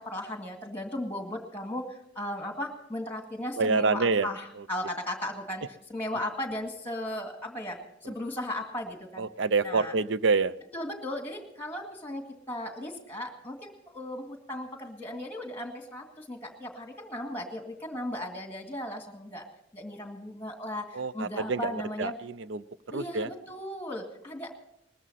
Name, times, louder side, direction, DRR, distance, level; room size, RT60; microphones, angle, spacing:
voice 1, 0.0-9.3 9.6-9.9 10.7-19.4 19.7-22.2 22.9-24.5, left 1 dB, 10° left, 4 dB, 2.1 m, -36 dB
voice 2, 3.6-4.3 9.2-10.5 20.9-21.7 22.0-22.6 22.9-23.3, right 4 dB, 80° right, 16 dB, 0.5 m, -27 dB
20.0 x 14.0 x 4.1 m, 0.79 s
head